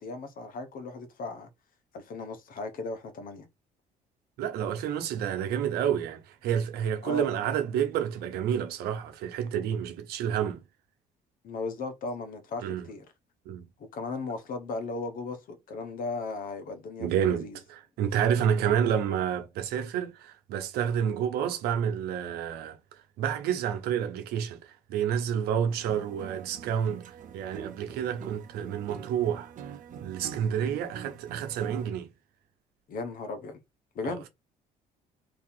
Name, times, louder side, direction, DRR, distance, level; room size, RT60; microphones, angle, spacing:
voice 1, 0.0-1.5 1.9-3.5 7.0-7.3 11.4-13.0 13.8-17.6 32.9-33.6 33.9-34.3, left 3 dB, 60° left, 1.1 m, -36 dB
voice 2, 4.4-10.6 12.6-12.9 13.5-13.6 17.0-22.8 23.2-27.0 27.3-29.5 30.0-32.1 34.0-34.3, right 9 dB, 85° right, 0.9 m, -29 dB
sound 1, 25.7-31.9, right 8 dB, 55° right, 0.7 m, -44 dB
2.8 x 2.8 x 3.9 m
cardioid pair, 90°, 16 cm